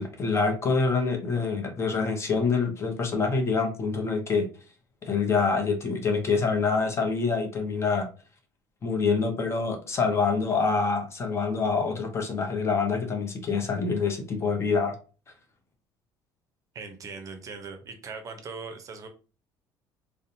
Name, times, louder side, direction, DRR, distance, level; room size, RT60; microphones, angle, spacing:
voice 1, 0.0-4.5 5.0-8.1 8.8-14.9, left 4 dB, 30° left, 5 dB, 0.6 m, -26 dB
voice 2, 16.7-19.1, right 4 dB, 40° right, 6 dB, 0.6 m, -40 dB
2.6 x 2.1 x 2.6 m, 0.36 s
supercardioid pair, 100°, 9 cm